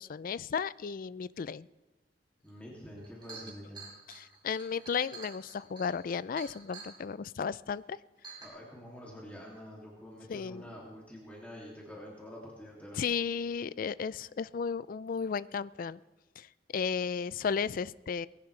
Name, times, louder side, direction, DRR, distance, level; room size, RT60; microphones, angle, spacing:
voice 1, 0.0-1.7 4.1-8.0 10.3-10.6 13.0-16.0 16.4-16.5 16.7-18.3, left 6 dB, 50° left, 19 dB, 0.4 m, -34 dB
voice 2, 2.4-3.8 8.4-13.0, equal, 10° left, -4 dB, 2.5 m, -47 dB
Chink clink, 2.6-2.7 3.0-7.0 7.7-7.8 8.2-8.5, right 4 dB, 25° right, 4.0 m, -48 dB
20.0 x 17.0 x 3.3 m, 1.1 s
head